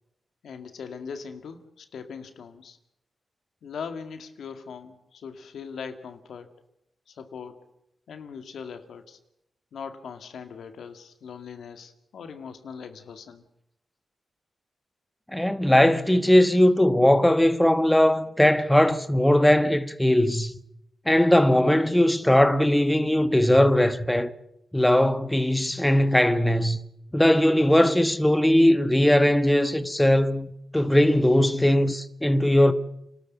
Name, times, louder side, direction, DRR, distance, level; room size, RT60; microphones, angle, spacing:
voice 1, 0.4-2.8 3.6-6.6 7.1-7.6 8.1-9.2 9.7-13.4, left 6 dB, 85° left, 2.0 m, -40 dB
voice 2, 15.3-20.5 21.1-24.3 24.7-26.8 27.1-32.7, left 1 dB, 10° left, 1.2 m, -20 dB
29.0 x 13.0 x 8.3 m
cardioid pair, 80°, 0 cm